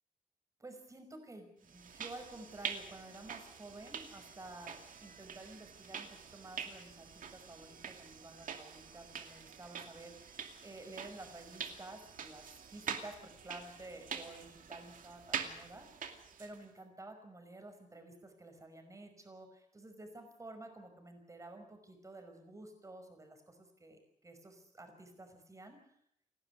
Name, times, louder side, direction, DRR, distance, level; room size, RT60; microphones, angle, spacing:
voice 1, 0.6-25.9, right 2 dB, 25° right, 5 dB, 5.5 m, -52 dB
sound 1, 1.7-16.6, right 7 dB, 90° right, 2.6 m, -45 dB
29.5 x 12.0 x 9.5 m, 0.72 s
wide cardioid pair, 140°, 14 cm